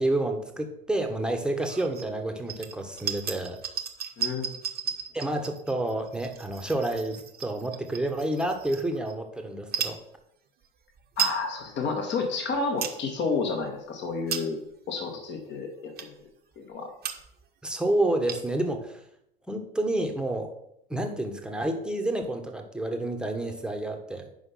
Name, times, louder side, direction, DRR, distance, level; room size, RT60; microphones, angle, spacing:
voice 1, 0.0-3.6 5.1-10.0 17.6-19.0 19.5-20.5 20.9-24.3, right 1 dB, 5° right, 4 dB, 1.3 m, -29 dB
sound 1, 1.6-2.1 2.5-9.1 9.6-10.0 10.6-10.7 10.9-11.4 11.8-11.9 12.4-13.0 13.5-13.7 14.1-14.7 15.3-15.4 16.0-16.3 16.7-16.8 17.0-17.4 17.7-17.8 18.0-18.7, right 8 dB, 35° right, 1.2 m, -35 dB
voice 2, 4.2-4.6 11.2-14.6 14.9-16.1 16.6-16.9, left 4 dB, 40° left, 3 dB, 1.6 m, -30 dB
8.2 x 5.4 x 5.7 m, 0.77 s
figure-of-eight pair, 70°, 29 cm